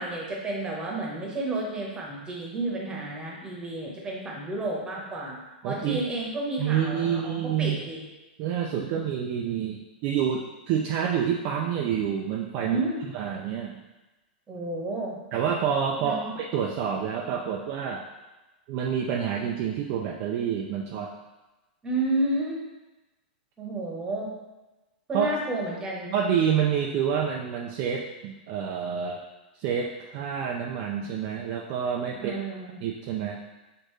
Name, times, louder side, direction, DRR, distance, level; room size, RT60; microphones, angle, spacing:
voice 1, 0.0-5.4 5.6-8.0 12.6-13.0 14.5-15.2 16.0-16.3 21.8-22.6 23.6-24.3 25.1-26.1 32.1-32.8, right 2 dB, 15° right, -2 dB, 1.0 m, -31 dB
voice 2, 5.6-6.0 6.6-7.9 8.4-12.8 13.1-13.8 15.3-18.0 18.7-21.1 25.1-25.4 26.1-29.2 29.5-32.3 32.8-33.4, right 8 dB, 40° right, 0 dB, 0.4 m, -28 dB
6.5 x 2.6 x 3.1 m, 1.1 s
hypercardioid pair, 145°, 5 cm